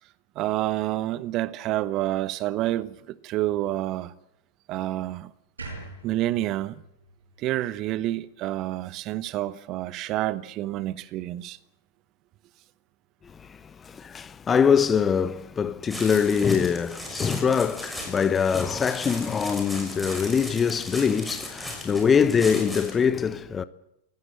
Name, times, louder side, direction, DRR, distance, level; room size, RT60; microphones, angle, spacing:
voice 1, 0.4-2.9 3.2-4.1 4.7-5.3 6.0-6.7 7.4-11.6, right 15 dB, 35° right, 1.0 m, -28 dB
sound 1, 5.6-8.7, right 3 dB, 75° right, 8.0 m, -44 dB
voice 2, 13.8-23.6, left 6 dB, 20° left, 0.9 m, -23 dB
sound 2, 15.9-23.0, left 1 dB, ahead, 6.1 m, -37 dB
24.5 x 17.5 x 7.8 m
figure-of-eight pair, 90°, 0 cm